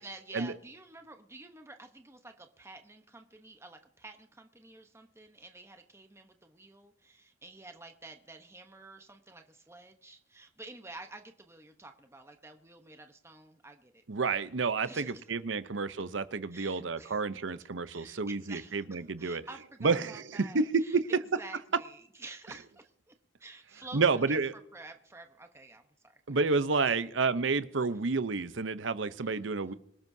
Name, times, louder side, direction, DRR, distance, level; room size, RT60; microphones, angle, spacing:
voice 1, 0.0-14.4 14.8-15.1 16.5-17.2 17.9-18.8 19.2-23.1 23.4-24.4 24.7-26.4 26.8-27.0 29.2-29.4, right 2 dB, 15° right, 6 dB, 1.0 m, -50 dB
voice 2, 14.1-19.4 19.8-21.0 23.9-24.5 26.3-29.7, right 4 dB, 70° right, 13 dB, 0.8 m, -30 dB
25.5 x 12.0 x 2.7 m, 0.71 s
head